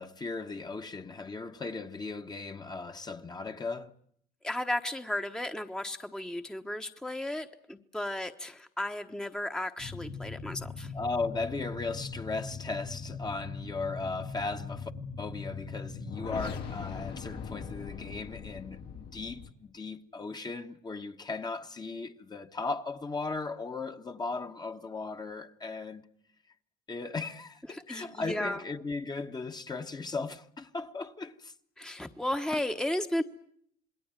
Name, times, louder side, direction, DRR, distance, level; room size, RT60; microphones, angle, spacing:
voice 1, 0.0-3.9 10.9-14.9 15.2-26.0 26.9-31.5, left 3 dB, 25° left, 1.3 m, -37 dB
voice 2, 4.4-10.9 27.7-28.6 31.8-33.2, left 1 dB, 5° left, 1.1 m, -34 dB
sound 1, 9.8-19.5, left 5 dB, 80° left, 4.4 m, -40 dB
27.5 x 21.0 x 9.0 m
cardioid pair, 110°, 17 cm